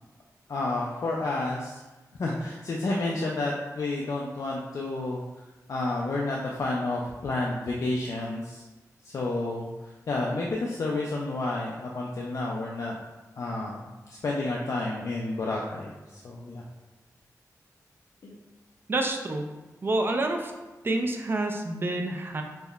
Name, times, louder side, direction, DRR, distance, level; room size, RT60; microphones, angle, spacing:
voice 1, 0.5-1.8 2.2-5.2 5.7-8.6 9.0-13.0 13.4-16.6 18.2-18.4, left 2 dB, 60° left, -2 dB, 0.4 m, -30 dB
voice 2, 18.9-19.5 19.8-20.5 20.8-22.4, right 2 dB, 35° right, 3 dB, 0.4 m, -28 dB
5.3 x 2.1 x 2.3 m, 1.1 s
wide cardioid pair, 125°, 6 cm